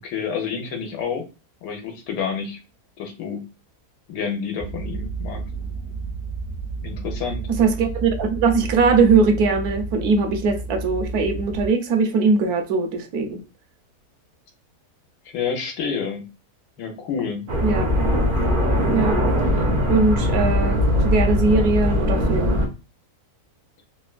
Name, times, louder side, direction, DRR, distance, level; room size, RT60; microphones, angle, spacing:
voice 1, 0.0-1.2 1.6-2.6 3.0-3.4 4.1-5.4 6.8-7.5 15.3-16.3 16.8-17.5, left 6 dB, 90° left, 1.4 m, -29 dB
sound 1, 4.6-11.7, right 4 dB, 50° left, 0.7 m, -31 dB
voice 2, 7.6-13.4 17.6-17.9 18.9-19.2 19.9-22.6, right 4 dB, 75° right, 1.1 m, -20 dB
sound 2, 17.5-22.7, left 1 dB, 50° right, 0.6 m, -20 dB
3.3 x 2.2 x 2.3 m
omnidirectional pair, 1.8 m